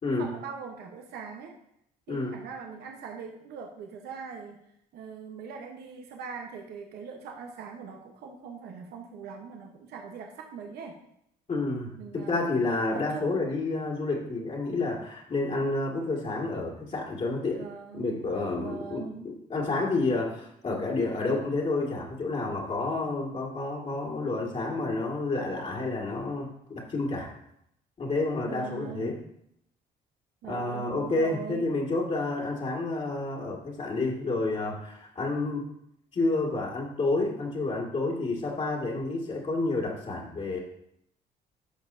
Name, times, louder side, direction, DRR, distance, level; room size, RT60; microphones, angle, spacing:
voice 1, 0.2-1.5 2.1-4.6 4.9-11.0 12.0-12.5 12.9-13.5 17.6-18.2 18.6-19.3 28.5-29.2 30.4-31.6, right 6 dB, 75° right, 2 dB, 1.0 m, -41 dB
voice 2, 11.5-17.7 17.9-19.1 19.5-27.3 28.0-29.2 30.5-35.7 36.1-40.6, left 2 dB, 40° left, -3 dB, 2.0 m, -29 dB
11.5 x 5.4 x 2.7 m, 0.75 s
cardioid pair, 85°, 17 cm